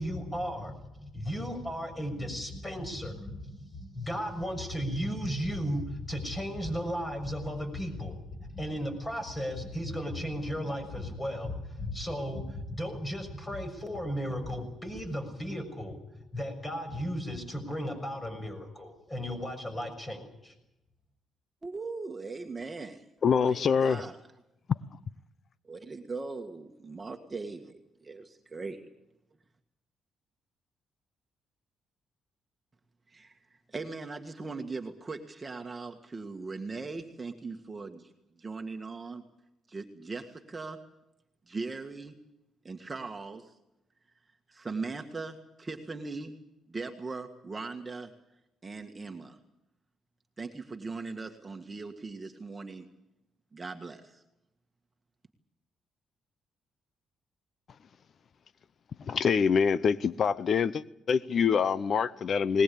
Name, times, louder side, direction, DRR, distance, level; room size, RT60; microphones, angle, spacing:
voice 1, 0.0-8.1 8.4-16.0 16.3-20.5, equal, 20° left, 6.6 m, -35 dB
voice 2, 21.6-23.0 23.4-24.2 25.7-27.6 28.1-28.8 33.1-38.1 38.4-39.2 39.7-40.8 41.5-42.1 42.6-43.5 44.5-46.3 46.7-48.1 48.6-49.4 50.4-52.9 53.5-54.2, right 3 dB, 25° right, 1.7 m, -39 dB
voice 3, 23.2-24.0 24.7-24.8 59.1-62.6, left 6 dB, 55° left, 0.7 m, -25 dB
20.5 x 20.0 x 8.6 m
cardioid pair, 90°, 0 cm